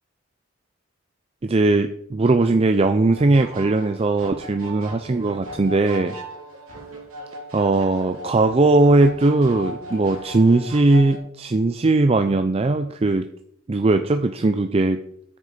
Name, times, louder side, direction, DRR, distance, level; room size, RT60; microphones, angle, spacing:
voice 1, 1.4-6.2 7.5-13.3 13.7-15.0, right 2 dB, 30° right, 8 dB, 0.4 m, -19 dB
sound 1, 3.0-11.2, right 1 dB, 90° right, 2.7 m, -37 dB
9.0 x 6.7 x 5.0 m, 0.69 s
head